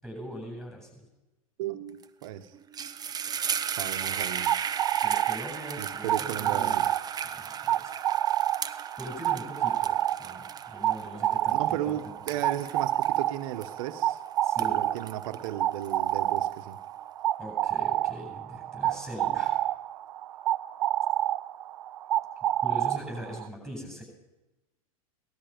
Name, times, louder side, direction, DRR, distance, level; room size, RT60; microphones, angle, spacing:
voice 1, 0.0-1.0 5.0-6.8 7.2-8.0 8.6-11.9 14.4-14.8 17.4-19.6 22.6-24.0, equal, ahead, 1 dB, 7.7 m, -41 dB
voice 2, 1.6-2.5 3.7-4.5 5.8-6.9 11.5-14.2 14.6-16.8, right 12 dB, 65° right, 9 dB, 1.2 m, -35 dB
sound 1, 2.0-2.2 2.5-14.1 14.4-16.4, right 7 dB, 20° right, 0.8 m, -36 dB
sound 2, 4.0-23.5, right 13 dB, 85° right, 0.5 m, -29 dB
18.5 x 12.5 x 5.2 m, 1.0 s
hypercardioid pair, 115°, 19 cm